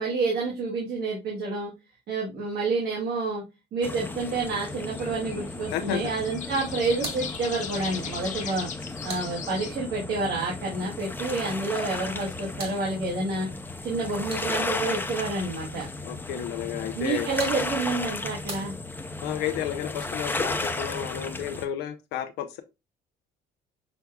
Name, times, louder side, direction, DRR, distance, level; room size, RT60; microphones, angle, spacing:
voice 1, 0.0-1.7 2.1-3.4 3.7-8.7 9.0-13.5 13.8-15.9 16.9-18.7, right 3 dB, 70° right, 1.9 m, -29 dB
sound 1, 3.8-21.7, left 2 dB, 10° left, 0.6 m, -34 dB
sound 2, 4.1-9.7, left 7 dB, 45° left, 0.9 m, -39 dB
voice 2, 5.7-6.1 16.0-17.3 19.2-22.6, left 10 dB, 85° left, 0.6 m, -32 dB
sound 3, 8.7-10.0 12.0-14.9 16.9-19.4, right 3 dB, 35° right, 1.6 m, -45 dB
6.2 x 3.4 x 2.3 m
cardioid pair, 110°, 17 cm